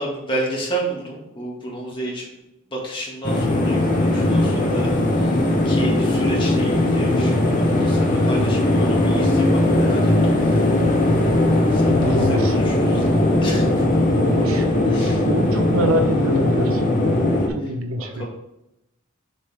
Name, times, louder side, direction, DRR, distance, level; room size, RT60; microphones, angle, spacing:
voice 1, 0.0-2.3 2.7-10.6 11.7-13.9 14.9-15.3 17.6-17.7 18.0-18.3, right 1 dB, 25° left, -3 dB, 1.9 m, -31 dB
sound 1, 3.2-17.5, left 1 dB, 40° left, 1.1 m, -19 dB
voice 2, 11.9-12.5 14.2-17.2 17.5-18.3, right 1 dB, 75° right, 5 dB, 1.0 m, -25 dB
7.3 x 4.9 x 3.6 m, 0.87 s
head